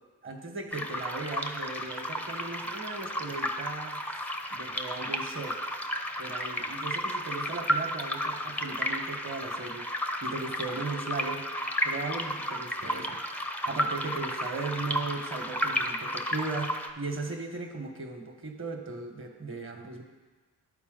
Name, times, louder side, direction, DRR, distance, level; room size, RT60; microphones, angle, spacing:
voice 1, 0.2-5.6 6.2-9.9 10.2-11.5 11.8-13.2 13.6-20.0, right 3 dB, 30° right, 4 dB, 1.2 m, -37 dB
sound 1, 0.7-16.9, equal, 5° left, 0.6 m, -33 dB
11.0 x 4.3 x 3.9 m, 1.3 s
supercardioid pair, 55°, 39 cm